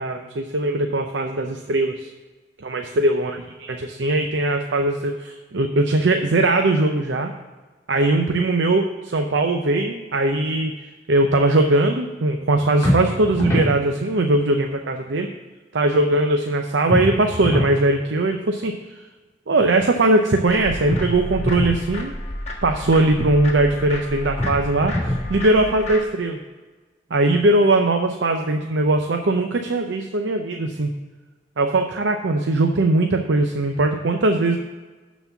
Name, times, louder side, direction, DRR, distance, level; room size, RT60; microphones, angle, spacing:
voice 1, 0.0-2.1 2.6-7.3 7.9-15.3 15.7-19.1 19.5-22.1 22.6-26.4 27.1-30.9 31.6-34.6, right 2 dB, 80° right, 4 dB, 0.6 m, -20 dB
sound 1, 12.8-13.7 16.9-17.8 20.9-21.8 24.4-25.3, left 1 dB, 15° left, 2.8 m, -23 dB
sound 2, 20.5-26.0, left 1 dB, 35° left, 1.3 m, -32 dB
12.0 x 4.1 x 7.0 m, 1.3 s
head